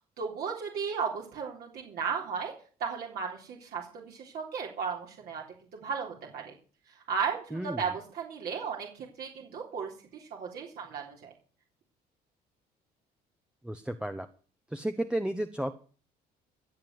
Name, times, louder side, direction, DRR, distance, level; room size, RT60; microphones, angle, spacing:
voice 1, 0.2-2.5 2.8-5.4 5.7-6.5 7.1-11.3, right 6 dB, 65° right, -1 dB, 3.6 m, -35 dB
voice 2, 7.5-7.8 13.6-14.3 14.7-15.7, right 1 dB, 5° right, 7 dB, 0.9 m, -32 dB
15.5 x 7.4 x 8.0 m, 0.41 s
cardioid pair, 110°, 17 cm